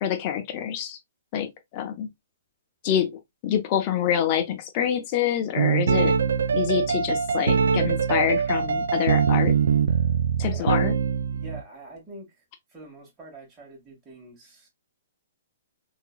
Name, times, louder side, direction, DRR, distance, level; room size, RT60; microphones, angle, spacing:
voice 1, 0.0-1.0 1.3-2.1 2.8-3.1 3.4-6.2 6.5-9.5 10.4-10.9, left 9 dB, 40° left, 0.8 m, -26 dB
sound 1, 5.6-11.6, right 6 dB, 75° right, 0.3 m, -23 dB
voice 2, 10.4-10.8 11.3-12.4 12.7-14.7, right 2 dB, 20° right, 1.8 m, -45 dB
3.6 x 2.8 x 2.2 m
hypercardioid pair, 130°, 0 cm